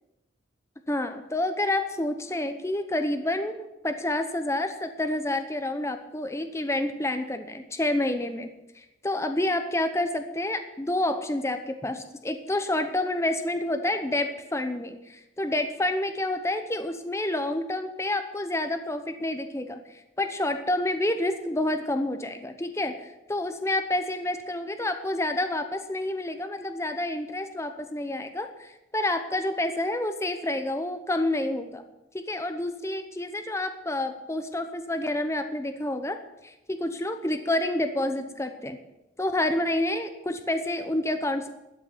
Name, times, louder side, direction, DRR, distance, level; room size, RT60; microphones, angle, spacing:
voice 1, 0.9-8.5 8.8-19.8 20.2-31.8 32.1-36.2 36.4-38.8 39.2-41.5, left 1 dB, 15° left, 8 dB, 0.8 m, -28 dB
13.0 x 6.1 x 9.6 m, 0.93 s
head